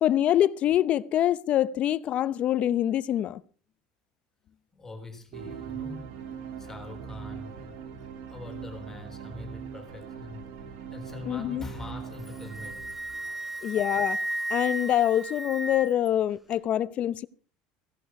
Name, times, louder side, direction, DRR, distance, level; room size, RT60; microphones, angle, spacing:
voice 1, 0.0-3.4 11.3-11.7 13.6-14.2 14.5-17.3, left 11 dB, 40° left, 0.7 m, -25 dB
voice 2, 4.7-6.0 6.6-7.8 8.3-10.5 10.9-12.9 13.2-13.8, left 2 dB, 10° left, 3.9 m, -43 dB
sound 1, 5.3-13.8, right 7 dB, 80° right, 2.9 m, -41 dB
Wind instrument woodwind instrument, 12.1-16.1, right 1 dB, 5° right, 1.1 m, -34 dB
17.0 x 11.5 x 5.9 m
cardioid pair, 145°, 3 cm